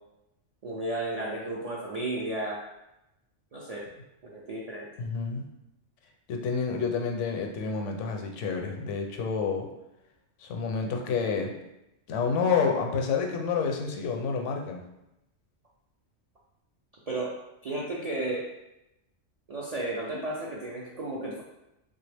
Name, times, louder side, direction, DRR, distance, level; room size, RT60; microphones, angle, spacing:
voice 1, 0.6-2.6 3.5-3.9 4.2-4.9 17.1-17.3 17.6-18.5 19.5-21.4, right 2 dB, 65° right, -4 dB, 0.4 m, -33 dB
voice 2, 5.0-5.4 6.3-9.7 10.4-11.5 12.1-14.8, left 5 dB, 80° left, 3 dB, 0.9 m, -29 dB
3.2 x 2.2 x 3.3 m, 0.90 s
omnidirectional pair, 1.2 m